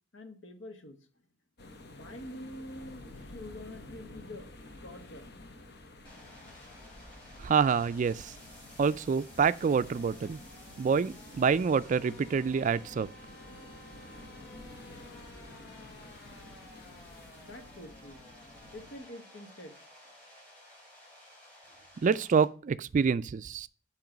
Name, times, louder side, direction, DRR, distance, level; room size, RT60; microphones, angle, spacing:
voice 1, 0.1-1.0 1.9-4.5 4.8-5.3 17.4-18.2 18.7-19.8, left 1 dB, 85° left, 1.1 m, -46 dB
sound 1, 1.6-19.0, left 2 dB, 60° left, 1.0 m, -50 dB
sound 2, 6.0-22.4, left 1 dB, 10° left, 4.2 m, -54 dB
voice 2, 7.4-8.3 8.8-10.4 10.8-13.1 22.0-23.7, right 6 dB, 40° right, 0.3 m, -27 dB
8.9 x 3.1 x 5.8 m
head